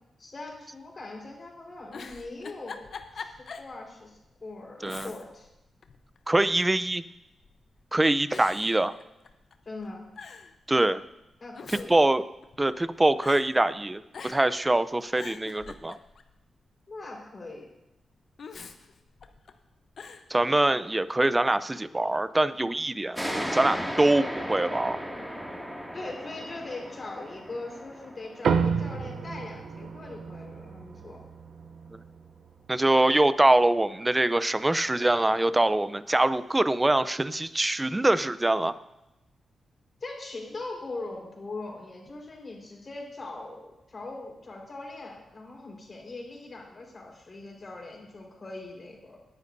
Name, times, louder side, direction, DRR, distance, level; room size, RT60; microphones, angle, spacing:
voice 1, 0.2-5.5 9.6-10.0 11.4-12.0 16.9-17.6 25.9-31.2 40.0-49.2, left 2 dB, 45° left, 0 dB, 4.5 m, -41 dB
Giggle, 1.7-3.7 4.1-4.2 4.8-5.5 5.8-6.6 7.4-7.8 8.3-9.5 9.8-9.9 10.2-10.5 11.3-12.9 13.2-13.5 14.1-14.6 15.0-16.3 18.4-19.5 20.0-20.3, left 5 dB, 65° left, 0.9 m, -43 dB
voice 2, 6.3-7.0 7.9-8.9 10.7-11.0 11.7-12.2 12.6-16.0 20.3-25.0 32.7-38.7, right 2 dB, 20° right, 15 dB, 0.6 m, -24 dB
sound 1, 23.1-30.3, equal, 5° right, 2.3 m, -36 dB
sound 2, 28.4-33.2, right 6 dB, 75° right, 0.7 m, -31 dB
19.0 x 9.9 x 2.7 m, 0.93 s
cardioid pair, 55°, 0 cm